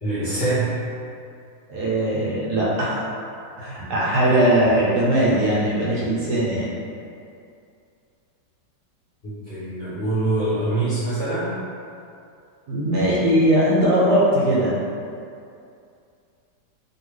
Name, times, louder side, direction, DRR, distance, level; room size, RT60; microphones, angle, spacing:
voice 1, 0.0-0.7 9.2-11.6, right 2 dB, 40° left, -14 dB, 0.9 m, -24 dB
voice 2, 1.7-3.0 3.6-6.7 12.7-14.8, right 1 dB, 70° right, -6 dB, 1.2 m, -20 dB
3.1 x 2.7 x 3.1 m, 2.5 s
omnidirectional pair, 2.0 m